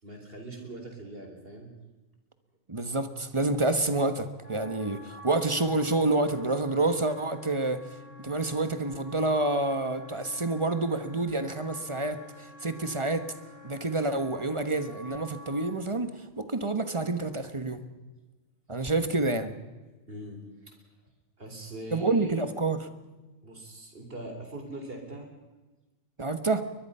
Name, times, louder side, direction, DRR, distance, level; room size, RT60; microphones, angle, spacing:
voice 1, 0.0-1.7 20.1-20.8 21.4-22.3 23.4-25.3, right 2 dB, 45° right, 3 dB, 4.3 m, -41 dB
voice 2, 2.7-7.8 8.2-13.3 13.6-17.8 18.7-19.5 21.9-22.9 26.2-26.6, right 2 dB, 25° right, 10 dB, 1.3 m, -28 dB
Wind instrument woodwind instrument, 4.4-15.7, left 1 dB, 50° left, 7.5 m, -49 dB
23.0 x 21.0 x 5.6 m, 1.2 s
omnidirectional pair, 1.3 m